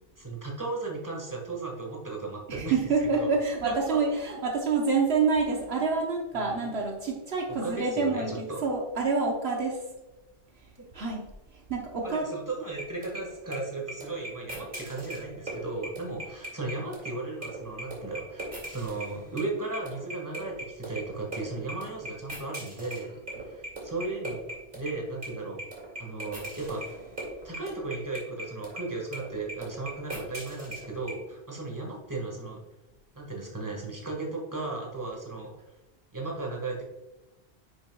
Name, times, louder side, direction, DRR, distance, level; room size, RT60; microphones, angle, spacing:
voice 1, 0.2-2.8 3.1-3.4 3.6-4.0 6.3-6.7 7.5-8.6 10.8-10.9 12.0-24.4 24.7-25.6 26.0-27.0 27.4-32.6 33.2-35.5 36.1-36.8, right 3 dB, 15° right, -1 dB, 1.7 m, -36 dB
voice 2, 2.5-9.8 10.9-11.2 11.7-12.3, right 4 dB, 70° right, 1 dB, 1.3 m, -27 dB
sound 1, 12.8-31.2, right 1 dB, 50° right, 2.6 m, -38 dB
9.8 x 6.7 x 2.3 m, 1.0 s
omnidirectional pair, 1.1 m